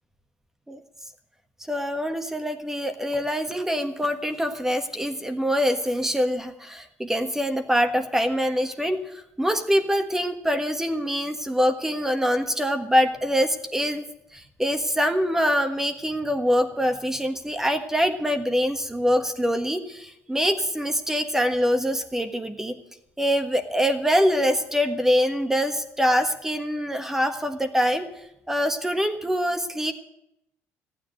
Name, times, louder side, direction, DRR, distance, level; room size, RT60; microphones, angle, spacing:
voice 1, 1.7-14.0 14.3-22.8 23.2-28.1 28.5-29.9, equal, 5° right, 7 dB, 1.5 m, -24 dB
14.5 x 9.7 x 7.8 m, 0.81 s
cardioid pair, 105°, 6 cm